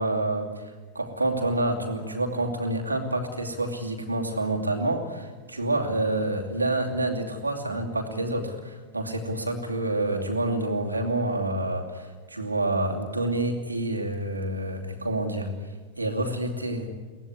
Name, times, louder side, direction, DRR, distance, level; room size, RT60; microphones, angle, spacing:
voice 1, 0.0-16.9, right 2 dB, 80° right, 3 dB, 2.8 m, -28 dB
23.0 x 17.5 x 9.7 m, 1.4 s
figure-of-eight pair, 90°, 0 cm